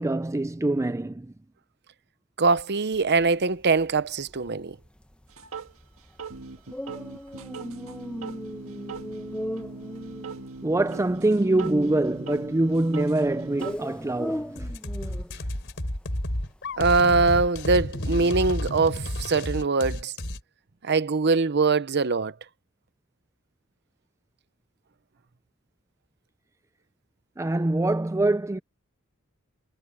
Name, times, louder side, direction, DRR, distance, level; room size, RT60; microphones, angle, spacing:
voice 1, 0.0-1.3 10.6-14.7 27.4-28.6, right 2 dB, 15° right, 0.4 m, -24 dB
voice 2, 2.4-4.8 16.8-20.1 20.8-22.3, right 4 dB, 50° right, 0.8 m, -22 dB
sound 1, 2.9-19.0, equal, 5° left, 0.9 m, -39 dB
sound 2, 5.4-5.7 6.2-13.8, right 4 dB, 80° right, 1.7 m, -39 dB
sound 3, 14.6-20.4, left 1 dB, 60° left, 4.0 m, -31 dB
head